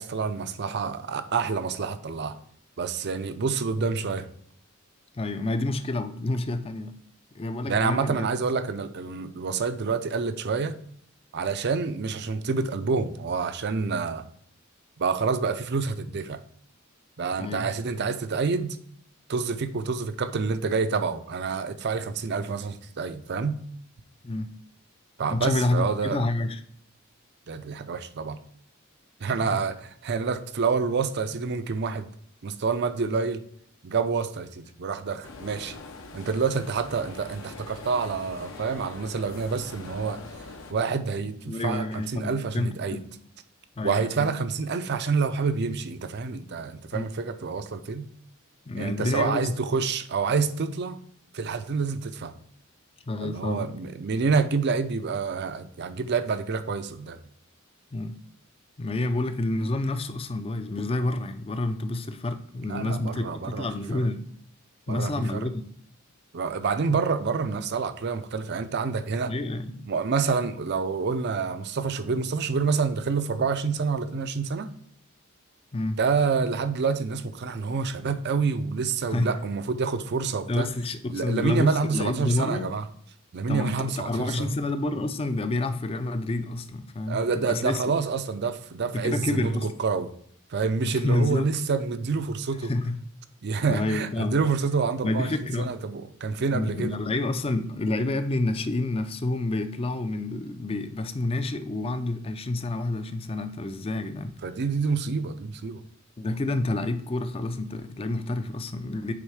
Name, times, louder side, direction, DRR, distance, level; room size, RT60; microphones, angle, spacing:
voice 1, 0.0-2.4 2.8-4.3 7.7-10.8 11.3-14.3 15.0-16.4 17.2-18.8 19.3-23.6 25.2-26.2 27.5-28.4 29.2-32.1 32.4-33.4 33.8-35.8 36.1-40.2 40.7-43.0 43.8-48.1 48.7-51.0 51.3-52.3 53.2-57.2 62.7-63.7 63.9-64.0 64.9-65.5 66.3-69.3 69.8-74.7 76.0-80.7 81.1-82.9 83.3-84.5 87.1-90.1 90.5-92.7 93.4-95.3 95.6-97.0 104.4-105.8, right 5 dB, 55° right, 0.5 m, -27 dB
voice 2, 5.1-6.9 7.3-8.3 17.4-17.7 24.2-24.5 25.3-26.6 29.4-29.6 41.5-43.1 43.8-44.3 46.9-47.1 48.7-49.5 53.1-53.7 57.9-58.2 58.8-64.3 64.9-65.6 66.9-67.0 69.3-69.9 75.7-76.0 79.1-79.3 80.5-82.7 83.5-87.8 88.9-89.7 90.8-91.5 92.7-93.0 93.7-94.4 95.0-95.7 96.5-104.3 106.2-109.1, left 2 dB, 25° left, 0.5 m, -29 dB
sound 1, 35.2-40.7, left 3 dB, 70° left, 0.9 m, -43 dB
8.6 x 3.6 x 4.8 m
head